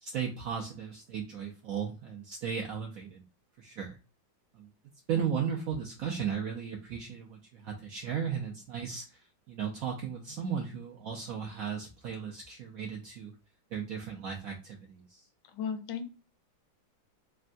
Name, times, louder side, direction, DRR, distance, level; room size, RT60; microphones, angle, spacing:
voice 1, 0.0-3.2 3.6-4.0 4.5-4.7 5.1-13.3 13.7-15.3, right 7 dB, 85° right, 0 dB, 0.7 m, -36 dB
voice 2, 15.5-16.1, left 6 dB, 75° left, 8 dB, 1.2 m, -35 dB
3.4 x 2.2 x 2.5 m, 0.33 s
omnidirectional pair, 2.1 m